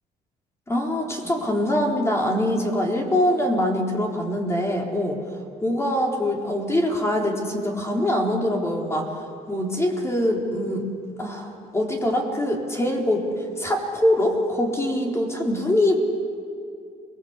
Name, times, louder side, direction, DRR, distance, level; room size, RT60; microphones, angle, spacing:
voice 1, 0.7-5.2 5.6-9.1 9.5-10.9 11.2-13.3 13.6-16.0, left 1 dB, 15° left, 0 dB, 3.9 m, -23 dB
28.0 x 20.5 x 8.2 m, 2.4 s
cardioid pair, 110°, 17 cm